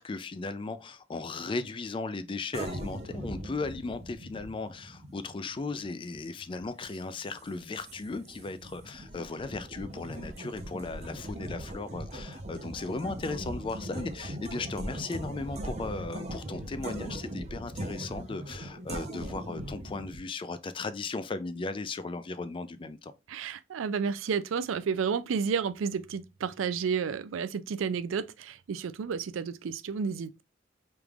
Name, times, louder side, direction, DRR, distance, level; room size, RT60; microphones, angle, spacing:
voice 1, 0.0-23.1, left 3 dB, 25° left, 0.4 m, -36 dB
sound 1, 2.5-20.2, right 1 dB, 35° right, 0.7 m, -40 dB
voice 2, 23.3-30.4, right 6 dB, 85° right, 0.4 m, -31 dB
5.1 x 3.2 x 2.4 m
head